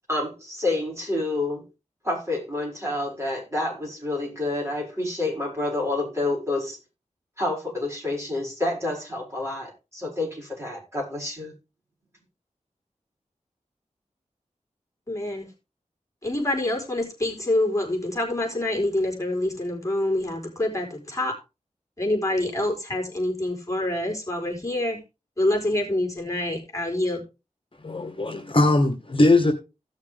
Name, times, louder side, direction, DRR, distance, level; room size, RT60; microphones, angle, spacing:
voice 1, 0.1-1.6 2.0-6.8 7.4-11.5, left 2 dB, 20° right, 6.3 m, -28 dB
voice 2, 15.1-15.5 16.2-21.3 22.0-25.0 25.4-27.2, left 1 dB, 25° left, 4.3 m, -26 dB
voice 3, 27.8-29.5, left 2 dB, 45° left, 1.7 m, -20 dB
16.0 x 6.5 x 3.6 m
wide cardioid pair, 65°, 13 cm